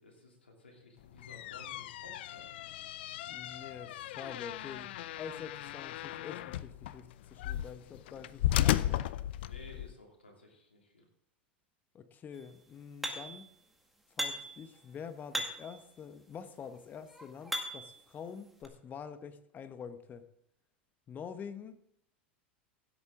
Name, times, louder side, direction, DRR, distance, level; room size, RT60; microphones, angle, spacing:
voice 1, 0.0-2.5 9.4-11.0, left 2 dB, 85° left, 0 dB, 3.1 m, -55 dB
sound 1, 1.0-9.9, left 13 dB, 65° left, 0.5 m, -35 dB
voice 2, 3.3-9.1 11.9-13.5 14.2-20.2 21.1-21.8, left 7 dB, 30° left, 11 dB, 1.1 m, -46 dB
sound 2, 13.0-13.5 14.2-14.6 15.3-15.8 16.6-18.0 18.6-18.7, equal, ahead, 1.9 m, -38 dB
16.0 x 8.3 x 3.8 m, 0.72 s
hypercardioid pair, 90°, 6 cm